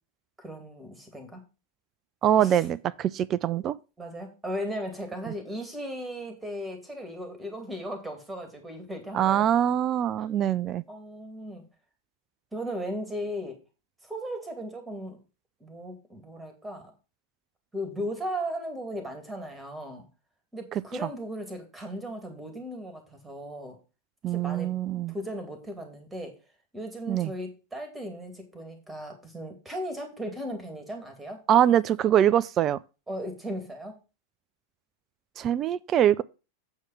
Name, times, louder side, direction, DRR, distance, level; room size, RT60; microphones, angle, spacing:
voice 1, 0.4-1.4 2.4-2.6 4.0-9.5 10.9-11.7 12.5-13.6 14.0-15.2 15.6-16.9 17.7-20.0 20.5-23.8 24.2-24.7 25.1-26.4 26.7-31.4 33.1-34.0, equal, 10° right, 2.4 m, -36 dB
voice 2, 2.2-3.7 9.1-10.8 21.0-21.1 24.2-25.1 27.1-27.3 31.5-32.8 35.4-36.2, right 10 dB, 30° right, 0.3 m, -23 dB
8.0 x 4.8 x 5.7 m
figure-of-eight pair, 90°, 0 cm